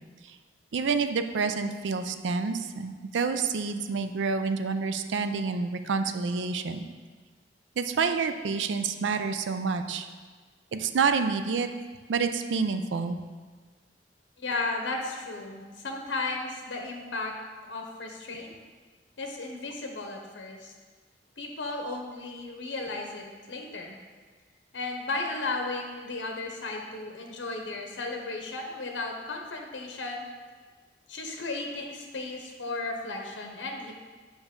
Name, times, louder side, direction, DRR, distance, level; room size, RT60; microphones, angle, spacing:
voice 1, 0.7-6.8 7.8-10.1 10.7-11.7 12.1-13.2, right 5 dB, 80° right, 8 dB, 0.4 m, -28 dB
voice 2, 14.4-17.3 17.7-18.5 19.2-20.7 21.4-24.0 24.7-30.3 31.1-33.9, left 3 dB, 80° left, 2 dB, 0.8 m, -35 dB
7.0 x 5.3 x 3.6 m, 1.4 s
head